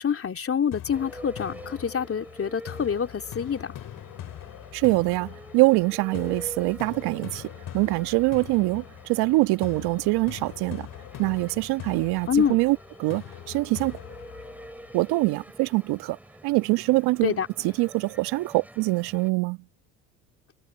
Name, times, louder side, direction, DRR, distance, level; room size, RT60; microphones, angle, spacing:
voice 1, 0.0-3.7 12.3-12.6 17.2-17.5, left 7 dB, 35° left, 2.9 m, -26 dB
sound 1, 0.7-15.7, left 11 dB, 50° left, 2.7 m, -42 dB
sound 2, 0.9-19.3, right 1 dB, 5° right, 8.0 m, -47 dB
voice 2, 4.7-7.5 7.7-10.9 11.2-14.0 14.9-16.2 16.4-19.6, right 23 dB, 65° right, 1.6 m, -24 dB
hypercardioid pair, 70°, 41 cm